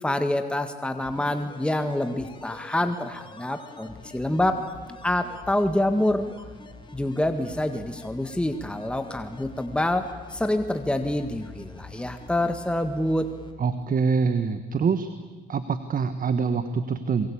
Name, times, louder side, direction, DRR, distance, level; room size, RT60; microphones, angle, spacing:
voice 1, 0.0-4.7 5.0-6.3 6.9-13.3, left 1 dB, 5° left, 7 dB, 1.7 m, -26 dB
sound 1, 1.0-13.5 13.8-13.9, left 3 dB, 25° left, 3.5 m, -45 dB
voice 2, 13.6-15.1 15.5-17.3, right 5 dB, 45° right, 10 dB, 1.5 m, -25 dB
27.5 x 23.0 x 8.8 m, 1.3 s
cardioid pair, 85°, 20 cm